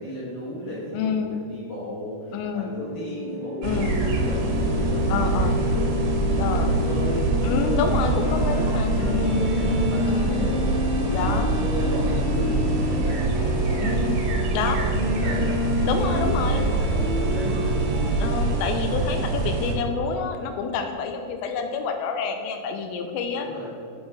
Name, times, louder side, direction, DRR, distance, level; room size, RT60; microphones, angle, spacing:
voice 1, 0.0-5.9 6.4-10.7 11.2-14.1 14.4-17.9 23.4-23.8, left 1 dB, 65° left, -7 dB, 2.2 m, -36 dB
voice 2, 0.9-1.3 2.3-2.7 3.6-4.0 5.1-5.6 6.4-6.8 7.4-9.4 10.1-10.5 11.1-11.5 13.8-14.2 14.5-14.8 15.8-16.6 18.2-23.5, left 5 dB, 85° left, 5 dB, 2.8 m, -28 dB
sound 1, 2.7-18.5, left 2 dB, 50° left, 2.5 m, -29 dB
sound 2, 3.6-19.8, right 2 dB, 85° right, 3.3 m, -25 dB
7.9 x 4.2 x 4.7 m, 2.4 s
omnidirectional pair, 5.1 m